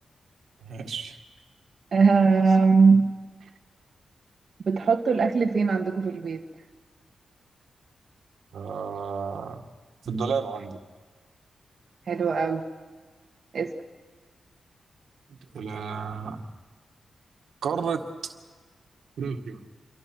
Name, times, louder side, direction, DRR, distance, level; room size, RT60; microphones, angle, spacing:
voice 1, 0.6-1.2 8.5-9.6 10.1-10.8 15.5-16.5 17.6-18.3 19.2-19.6, right 5 dB, 90° right, 5 dB, 1.8 m, -31 dB
voice 2, 1.9-3.1 4.6-6.4 12.1-12.6 13.5-13.7, right 4 dB, 50° right, 2 dB, 1.6 m, -20 dB
27.5 x 23.5 x 6.2 m, 1.4 s
wide cardioid pair, 170°, 0 cm